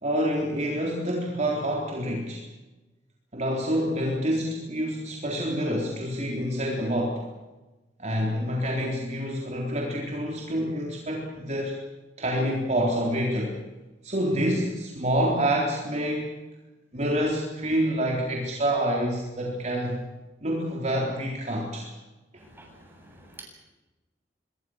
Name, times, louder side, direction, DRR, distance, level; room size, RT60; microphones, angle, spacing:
voice 1, 0.0-2.5 3.3-7.3 8.0-11.8 12.2-13.6 14.0-16.4 16.9-20.0 20.4-21.9, equal, 40° right, -1 dB, 3.9 m, -27 dB
voice 2, 22.4-22.8 23.1-23.4, right 2 dB, 15° right, 0 dB, 8.0 m, -47 dB
26.0 x 22.5 x 6.5 m, 1.1 s
head